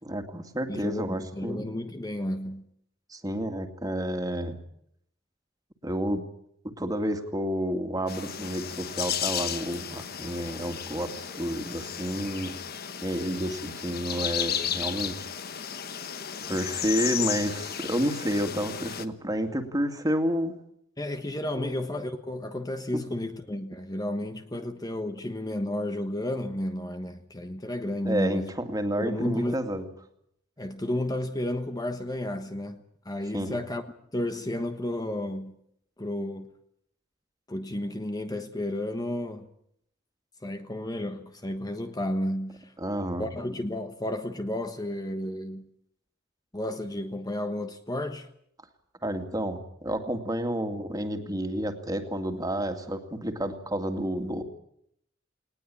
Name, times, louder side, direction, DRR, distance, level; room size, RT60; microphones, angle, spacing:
voice 1, 0.0-1.7 3.1-4.6 5.8-6.2 6.8-12.5 13.0-15.3 16.4-20.5 21.6-21.8 22.9-23.0 28.0-29.8 33.3-33.6 42.8-43.3 49.0-54.4, equal, 20° right, 2.4 m, -30 dB
voice 2, 0.7-2.7 21.0-28.5 29.0-29.6 30.6-33.8 34.1-35.5 36.0-36.5 37.5-39.5 40.4-42.7 43.2-45.7 46.5-48.3, left 1 dB, 20° left, 1.2 m, -32 dB
sound 1, 8.1-19.1, left 8 dB, 55° left, 1.3 m, -34 dB
20.0 x 19.5 x 8.8 m
head